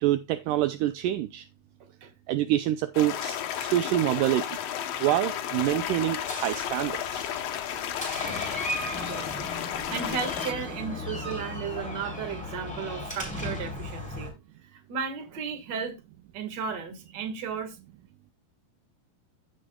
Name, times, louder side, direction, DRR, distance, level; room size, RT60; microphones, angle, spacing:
voice 1, 0.0-1.5 2.3-4.6 5.0-7.3, right 13 dB, 80° right, 1.9 m, -26 dB
voice 2, 1.8-2.1 9.0-14.3 14.7-16.0 16.3-17.8, right 6 dB, 45° right, 1.5 m, -35 dB
sound 1, 2.9-10.5, left 10 dB, 85° left, 1.4 m, -33 dB
Door, 5.6-14.3, left 1 dB, ahead, 3.7 m, -37 dB
15.5 x 6.1 x 2.3 m
omnidirectional pair, 4.3 m